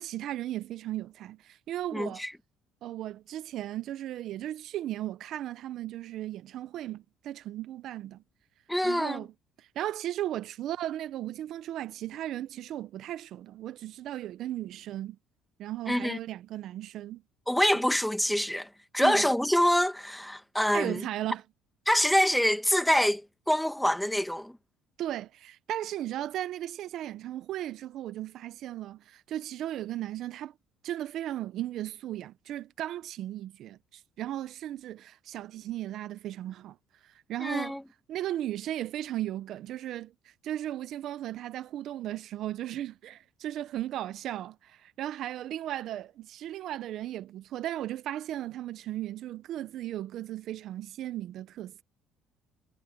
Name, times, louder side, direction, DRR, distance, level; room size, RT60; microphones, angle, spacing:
voice 1, 0.0-2.2 2.8-8.2 8.8-9.3 9.8-15.2 15.6-17.2 19.0-19.3 20.7-21.4 25.0-30.5 30.8-36.8 37.0-37.8 38.1-51.8, right 13 dB, 60° right, 0.7 m, -36 dB
voice 2, 1.9-2.3 8.7-9.2 15.9-16.2 17.5-21.1 21.9-23.2 23.5-24.6 37.4-37.8, equal, 5° left, 1.9 m, -26 dB
cardioid pair, 120°, 0 cm